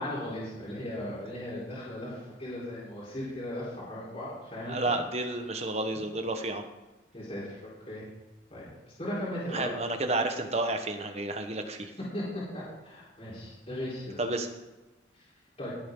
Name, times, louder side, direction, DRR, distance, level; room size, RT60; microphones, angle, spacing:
voice 1, 0.0-4.9 7.1-8.1 8.5-8.7 9.0-9.9 12.1-12.2 12.5-14.2 15.1-15.2 15.6-15.7, left 1 dB, 35° left, -9 dB, 4.4 m, -37 dB
voice 2, 4.7-6.6 9.5-11.9 14.2-14.5, right 2 dB, 35° right, 6 dB, 1.2 m, -31 dB
18.5 x 8.6 x 3.9 m, 1.1 s
head